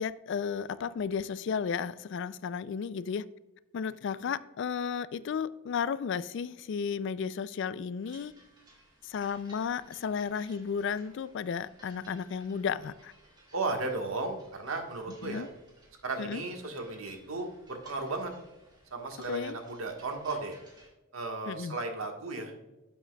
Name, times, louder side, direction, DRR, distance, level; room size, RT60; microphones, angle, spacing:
voice 1, 0.0-3.3 3.7-8.3 9.0-13.1 15.2-15.5 16.2-16.4 19.3-19.6 21.5-21.8, left 6 dB, 60° left, 0.3 m, -33 dB
sound 1, 8.0-20.9, right 1 dB, 20° right, 1.9 m, -59 dB
voice 2, 13.5-15.5 16.0-18.3 18.9-20.6 21.1-22.5, right 3 dB, 80° right, 1.4 m, -35 dB
11.0 x 7.1 x 2.3 m
head